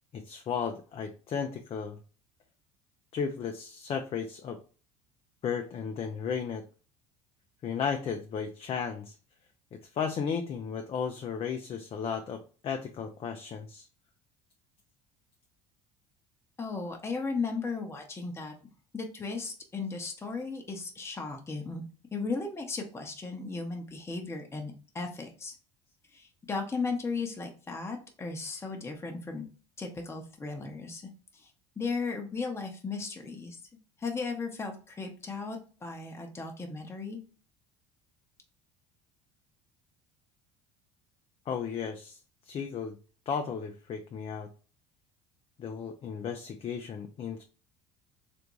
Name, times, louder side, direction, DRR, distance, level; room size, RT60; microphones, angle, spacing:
voice 1, 0.1-2.0 3.1-4.6 5.4-6.6 7.6-9.2 9.7-13.9 41.5-42.2 42.4-43.0 43.3-44.5 45.6-47.4, left 6 dB, 40° left, 4 dB, 0.5 m, -34 dB
voice 2, 16.6-18.5 18.9-25.5 26.1-29.4 29.8-31.5 31.8-33.6 34.0-37.2, left 4 dB, 15° left, 2 dB, 0.8 m, -36 dB
3.4 x 2.6 x 3.0 m, 0.37 s
hypercardioid pair, 70°, 15 cm